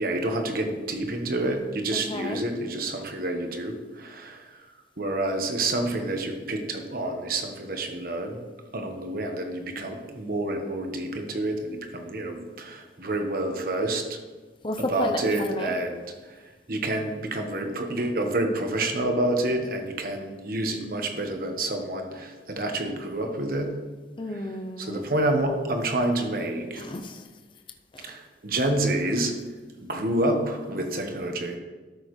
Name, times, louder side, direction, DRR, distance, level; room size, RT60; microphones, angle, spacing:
voice 1, 0.0-4.6 5.0-8.4 8.7-14.2 14.9-16.0 16.7-23.7 24.8-26.8 28.1-29.3 29.8-31.6, right 1 dB, 55° right, 4 dB, 1.2 m, -28 dB
voice 2, 1.9-2.4 14.6-15.8 24.2-25.0 26.8-27.2 27.9-28.1, left 2 dB, 30° left, 5 dB, 0.5 m, -32 dB
12.5 x 6.4 x 3.2 m, 1.3 s
head